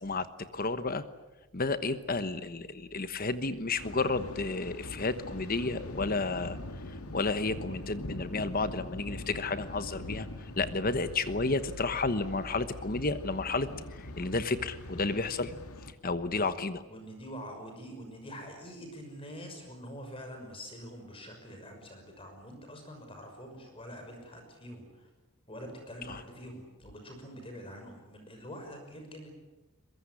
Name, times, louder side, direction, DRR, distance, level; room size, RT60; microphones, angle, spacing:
voice 1, 0.0-1.0 1.5-6.6 6.9-15.5 16.0-16.8 26.1-26.2, left 3 dB, 40° left, 12 dB, 1.1 m, -32 dB
Thunder, 3.8-15.9, left 1 dB, 85° left, 2.1 m, -43 dB
voice 2, 16.9-25.1 25.5-29.3, equal, 25° left, 4 dB, 6.0 m, -45 dB
23.0 x 22.5 x 10.0 m, 1.1 s
head